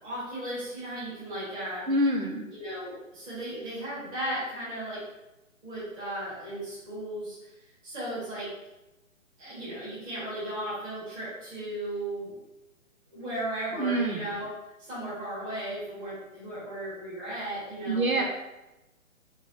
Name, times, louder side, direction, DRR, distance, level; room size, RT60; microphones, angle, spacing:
voice 1, 0.0-1.9 2.5-5.0 5.6-7.5 7.8-8.5 9.4-12.4 13.1-14.5 14.8-18.2, right 1 dB, 10° right, -9 dB, 1.3 m, -36 dB
voice 2, 1.9-2.4 13.7-14.3 17.9-18.2, right 1 dB, 85° right, 2 dB, 0.9 m, -26 dB
5.4 x 3.6 x 2.6 m, 0.98 s
figure-of-eight pair, 135°, 41 cm